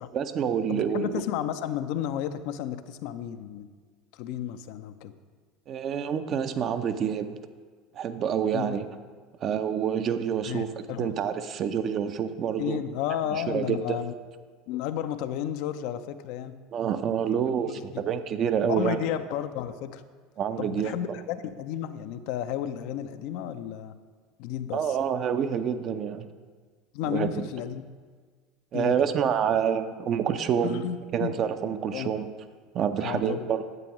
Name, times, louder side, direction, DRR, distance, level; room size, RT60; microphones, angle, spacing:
voice 1, 0.1-1.2 5.7-7.4 7.9-8.9 9.4-12.8 13.3-14.0 16.7-19.1 20.4-21.2 24.7-26.3 27.0-27.4 28.7-30.8 31.1-32.3 32.7-33.6, right 8 dB, 45° right, 9 dB, 0.6 m, -27 dB
voice 2, 0.7-3.7 4.1-5.1 8.5-8.8 10.5-11.1 12.6-14.1 14.7-16.6 17.7-17.8 18.7-20.0 20.6-24.0 24.4-25.0 26.9-27.9 28.7-29.1 30.6-31.3 31.9-32.1 33.0-33.5, left 10 dB, 60° left, 10 dB, 0.5 m, -32 dB
10.5 x 8.4 x 3.0 m, 1.5 s
hypercardioid pair, 75°, 0 cm